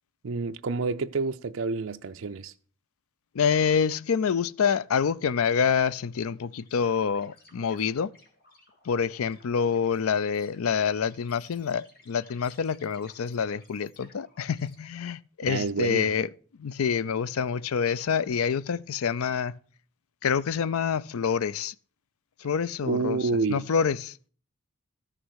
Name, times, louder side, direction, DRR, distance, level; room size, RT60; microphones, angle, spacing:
voice 1, 0.2-2.5 15.5-16.1 22.9-23.7, right 4 dB, 70° right, 0.5 m, -28 dB
voice 2, 3.3-8.1 8.8-16.3 16.6-19.6 20.2-21.7 22.4-24.1, left 6 dB, 90° left, 0.5 m, -27 dB
sound 1, 6.6-14.7, left 2 dB, 45° left, 2.6 m, -58 dB
14.0 x 6.6 x 6.3 m
head